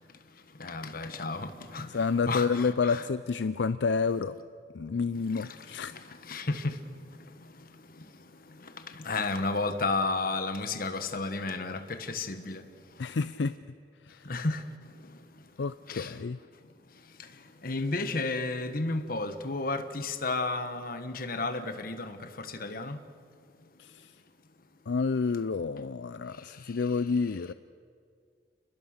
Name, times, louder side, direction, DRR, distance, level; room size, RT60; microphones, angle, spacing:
voice 1, 0.6-3.1 5.3-6.8 8.0-8.1 8.5-12.6 14.2-14.6 15.9-16.2 17.2-17.3 17.6-23.0, left 3 dB, 55° left, 1.4 m, -33 dB
voice 2, 1.9-4.3 4.7-5.9 13.0-13.6 14.0-14.2 15.6-16.4 23.8-24.1 24.9-27.5, left 5 dB, 80° left, 0.5 m, -29 dB
29.5 x 20.5 x 6.6 m
head